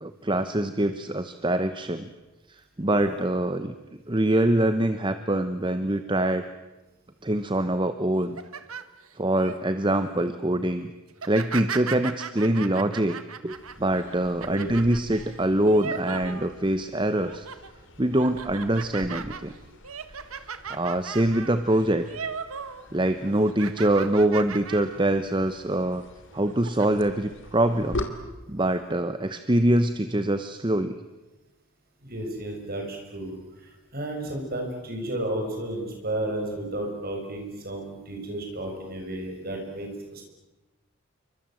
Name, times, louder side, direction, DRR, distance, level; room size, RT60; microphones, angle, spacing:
voice 1, 0.0-2.1 2.5-3.7 4.1-6.4 7.2-8.4 9.2-10.9 11.3-17.5 18.0-19.5 20.4-22.1 22.9-26.0 26.3-28.0 28.5-31.0, right 1 dB, 20° right, 10 dB, 1.0 m, -24 dB
sound 1, 8.1-9.6 10.0-10.3 11.1-16.9 17.2-17.7 18.1-22.8 23.1-25.0 25.4-25.6 26.3-26.9, right 6 dB, 75° right, 1.7 m, -37 dB
sound 2, 13.5-28.0, left 2 dB, 55° left, 2.9 m, -43 dB
voice 2, 32.0-40.2, right 1 dB, 45° right, 2 dB, 7.0 m, -33 dB
28.5 x 24.0 x 7.8 m, 1.1 s
head